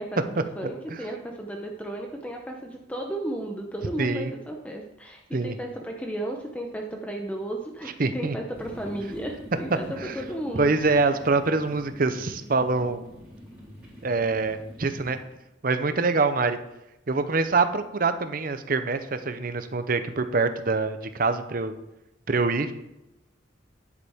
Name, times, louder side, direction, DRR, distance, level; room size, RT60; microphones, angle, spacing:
voice 1, 0.0-10.8, right 1 dB, 5° left, 2 dB, 0.7 m, -34 dB
voice 2, 4.0-4.3 5.3-5.6 8.0-8.4 10.0-10.1 10.5-13.1 14.0-15.2 15.6-16.6 17.1-21.7 22.3-22.7, right 3 dB, 45° right, 10 dB, 0.7 m, -25 dB
sound 1, 8.5-15.3, equal, 10° right, 4.1 m, -45 dB
9.8 x 8.5 x 3.6 m, 0.92 s
head